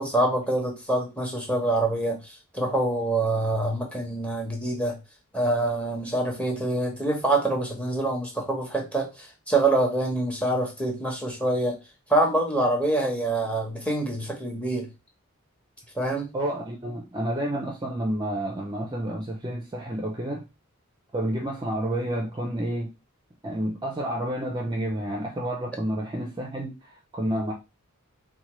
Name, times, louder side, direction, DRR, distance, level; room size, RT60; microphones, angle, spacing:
voice 1, 0.0-5.0 5.3-11.8 12.1-14.9 15.9-16.3, right 2 dB, 5° left, 0.8 m, -25 dB
voice 2, 16.3-20.5 21.1-22.9 23.4-27.5, right 1 dB, 20° right, 0.4 m, -30 dB
4.2 x 2.2 x 3.0 m
head